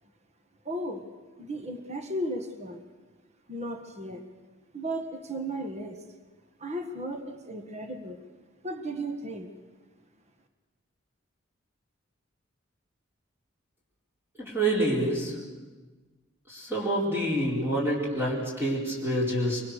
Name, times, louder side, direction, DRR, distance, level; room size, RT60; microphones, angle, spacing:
voice 1, 0.6-1.0 1.4-2.8 3.5-4.2 4.7-6.0 6.6-8.2 8.6-9.5, right 1 dB, 35° right, 6 dB, 1.7 m, -35 dB
voice 2, 14.4-15.3 16.5-19.6, right 1 dB, 10° right, -5 dB, 4.3 m, -27 dB
24.5 x 24.0 x 6.6 m, 1.3 s
head